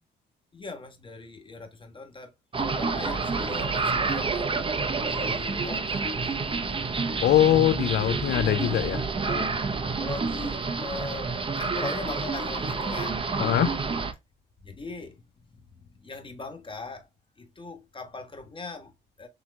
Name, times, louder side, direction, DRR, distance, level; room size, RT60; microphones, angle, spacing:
voice 1, 0.5-6.3 8.9-9.5 10.0-13.3 14.6-15.2 15.5-17.1 17.4-19.3, left 3 dB, 25° left, 1.5 m, -40 dB
sound 1, 2.5-14.1, right 4 dB, 25° right, 0.8 m, -28 dB
voice 2, 7.2-9.0 13.4-13.7, left 12 dB, 60° left, 0.4 m, -22 dB
6.5 x 2.9 x 2.3 m
cardioid pair, 90°, 20 cm